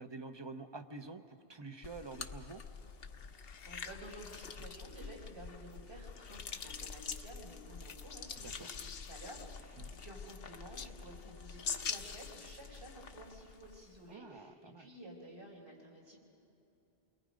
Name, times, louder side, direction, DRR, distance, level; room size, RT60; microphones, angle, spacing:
voice 1, 0.0-2.6 8.4-8.7 9.8-9.9 14.1-14.9, right 3 dB, 25° right, 8 dB, 0.9 m, -48 dB
sound 1, 1.8-14.0, left 6 dB, 65° left, 1.0 m, -45 dB
voice 2, 3.6-16.2, right 1 dB, 75° right, -2 dB, 4.6 m, -52 dB
29.0 x 21.5 x 5.2 m, 2.9 s
omnidirectional pair, 1.1 m